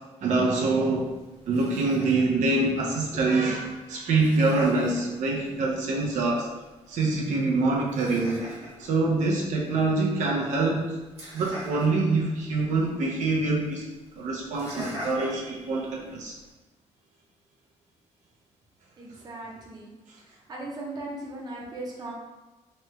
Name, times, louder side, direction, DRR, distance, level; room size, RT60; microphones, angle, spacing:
voice 1, 0.2-1.1 1.5-6.5 6.9-8.5 8.8-11.0 11.3-13.8 14.1-16.3, right 3 dB, 85° right, -2 dB, 0.6 m, -25 dB
Laughter, 0.5-16.5, equal, 55° right, 1.0 m, -45 dB
voice 2, 19.0-19.9 20.5-22.1, right 2 dB, 35° right, -3 dB, 0.6 m, -37 dB
3.1 x 2.2 x 3.1 m, 1.2 s
wide cardioid pair, 175°, 12 cm